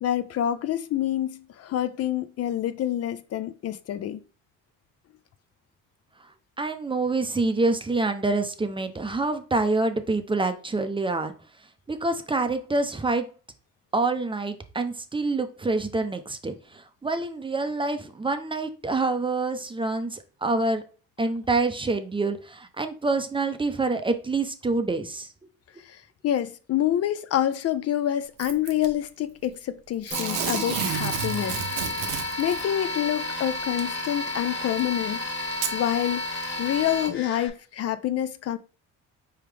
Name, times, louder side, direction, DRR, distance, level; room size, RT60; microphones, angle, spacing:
voice 1, 0.0-4.2 25.8-32.1 32.4-36.2 36.6-38.6, left 11 dB, 50° left, 0.4 m, -27 dB
voice 2, 6.6-11.3 11.9-13.3 13.9-20.8 21.2-25.3, right 3 dB, 15° right, 0.5 m, -26 dB
Packing tape duct tape / Tearing, 28.4-28.9 30.1-32.6 33.8-33.9 34.8-34.9 35.5-35.8 36.4-36.5, right 8 dB, 75° right, 0.9 m, -31 dB
sound 1, 30.1-37.5, left 2 dB, 35° left, 1.7 m, -32 dB
4.5 x 3.5 x 3.3 m
cardioid pair, 100°, 32 cm